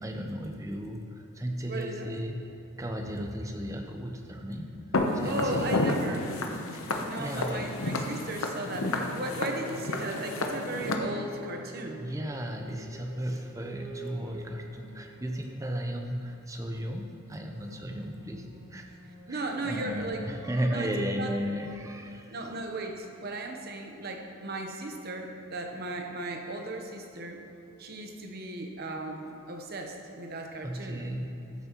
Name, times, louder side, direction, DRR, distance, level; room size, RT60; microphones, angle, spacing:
voice 1, 0.0-2.4 2.8-4.7 5.1-5.9 6.7-7.8 12.0-18.9 19.3-22.6 30.6-31.3, equal, 15° right, 3 dB, 0.6 m, -35 dB
voice 2, 1.7-2.1 5.2-6.3 7.0-12.0 19.3-20.3 20.7-21.3 22.3-27.4 27.8-31.0, right 2 dB, 45° right, 3 dB, 0.9 m, -36 dB
Walk footsteps, 4.9-11.0, left 2 dB, 70° left, 0.8 m, -31 dB
sound 1, 8.2-22.8, right 1 dB, 75° right, 1.8 m, -50 dB
13.5 x 7.4 x 3.0 m, 3.0 s
head